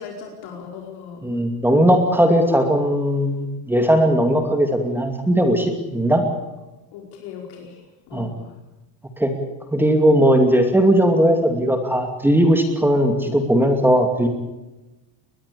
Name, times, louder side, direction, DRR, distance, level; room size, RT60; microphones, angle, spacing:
voice 1, 0.0-1.2 6.9-7.8 8.1-8.5, left 6 dB, 55° left, 0 dB, 5.1 m, -38 dB
voice 2, 1.2-6.2 8.1-8.3 9.2-9.3 9.7-14.3, equal, 5° right, 5 dB, 2.6 m, -18 dB
22.5 x 21.0 x 7.0 m, 1.0 s
cardioid pair, 150°, 45 cm